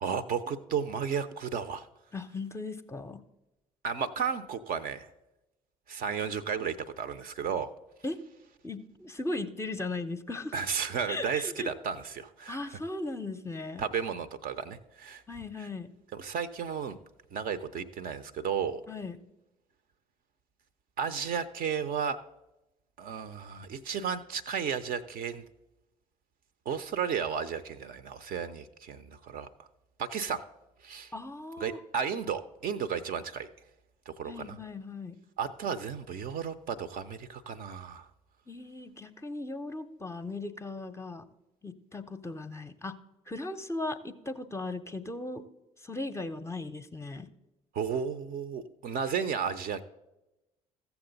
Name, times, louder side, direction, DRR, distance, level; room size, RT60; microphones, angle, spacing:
voice 1, 0.0-1.9 3.8-5.1 5.9-7.7 10.5-12.8 13.8-15.2 16.1-17.0 17.3-18.8 21.0-22.2 23.0-25.4 26.7-29.7 30.0-30.4 30.8-31.1 31.6-33.5 34.1-34.6 35.4-38.1 47.7-49.8, right 7 dB, 50° right, 12 dB, 0.6 m, -33 dB
voice 2, 2.1-3.2 8.0-8.2 8.6-10.5 11.1-11.7 12.5-13.9 15.3-15.9 18.9-19.2 31.1-31.8 34.2-35.2 38.5-41.3 41.6-43.0 43.3-45.5 45.8-47.3, left 2 dB, 15° left, 8 dB, 0.6 m, -37 dB
14.5 x 7.0 x 3.9 m, 0.97 s
figure-of-eight pair, 50°, 19 cm